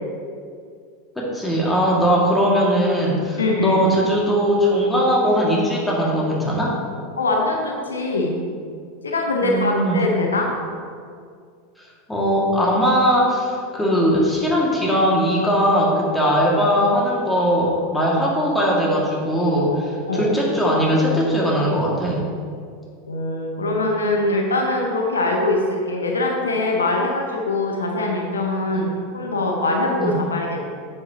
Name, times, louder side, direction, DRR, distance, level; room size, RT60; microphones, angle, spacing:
voice 1, 1.2-6.8 9.4-10.0 12.1-22.3 28.7-28.8 30.0-30.1, equal, 10° left, -4 dB, 2.0 m, -19 dB
voice 2, 3.4-3.8 7.2-8.4 9.0-10.5 20.1-20.3 23.1-30.7, left 2 dB, 80° left, 1 dB, 0.9 m, -22 dB
9.5 x 6.7 x 2.9 m, 2.2 s
figure-of-eight pair, 85°, 0 cm